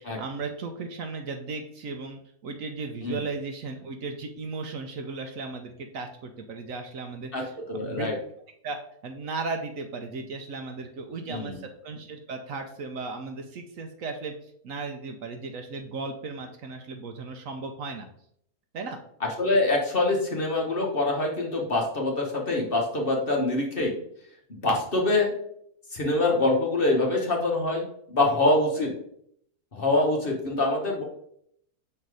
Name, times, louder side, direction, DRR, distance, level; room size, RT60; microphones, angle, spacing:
voice 1, 0.0-8.1 8.6-8.8 9.0-18.1 18.7-19.0, right 4 dB, 65° right, 5 dB, 1.0 m, -36 dB
voice 2, 7.7-8.1 11.3-11.6 19.4-23.9 24.5-25.3 25.9-28.9 29.7-31.0, left 2 dB, 40° left, 0 dB, 1.1 m, -25 dB
5.5 x 4.0 x 4.7 m, 0.70 s
omnidirectional pair, 1.7 m